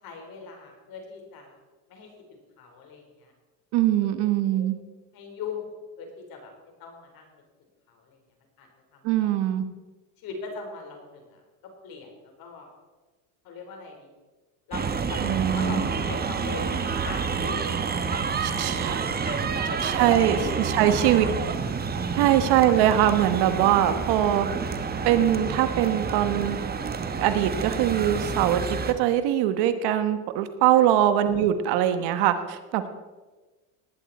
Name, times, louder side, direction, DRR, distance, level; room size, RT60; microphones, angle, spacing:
voice 1, 0.0-1.6 1.9-3.3 4.0-4.7 5.1-5.7 6.0-6.5 6.8-7.4 7.9-8.2 8.6-9.3 10.2-11.4 11.8-12.7 13.4-14.1 14.7-17.7 18.1-21.3 22.0-22.4 30.7-30.9 32.8-32.9, left 5 dB, 55° left, 2 dB, 4.3 m, -41 dB
voice 2, 3.7-4.7 9.0-9.6 15.2-15.8 18.6-19.0 19.8-21.2 22.2-24.5 25.0-26.6 27.2-32.9, right 11 dB, 65° right, 10 dB, 1.3 m, -22 dB
sound 1, 14.7-28.9, right 5 dB, 20° right, 1.1 m, -29 dB
18.5 x 11.0 x 4.3 m, 1.2 s
supercardioid pair, 115°, 43 cm